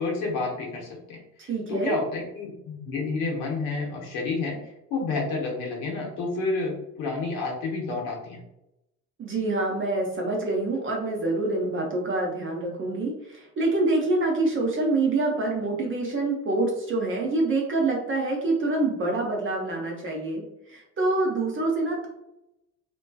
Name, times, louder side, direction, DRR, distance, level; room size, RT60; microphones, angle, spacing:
voice 1, 0.0-8.4, left 3 dB, 55° left, -1 dB, 0.8 m, -30 dB
voice 2, 1.4-2.0 9.2-20.4 20.7-22.1, right 2 dB, 25° right, -1 dB, 0.6 m, -26 dB
2.5 x 2.2 x 2.3 m, 0.85 s
figure-of-eight pair, 50°, 48 cm